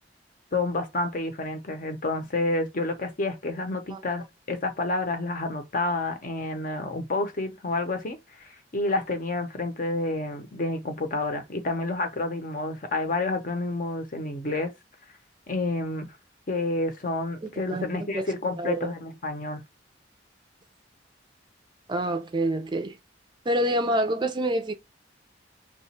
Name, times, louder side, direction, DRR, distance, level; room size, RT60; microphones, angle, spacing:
voice 1, 0.5-8.2 8.7-14.7 15.5-16.1 16.5-19.6, left 2 dB, 45° left, 0.7 m, -29 dB
voice 2, 18.6-18.9 21.9-23.0 23.5-24.7, right 1 dB, 25° right, 0.5 m, -26 dB
2.9 x 2.4 x 4.2 m
head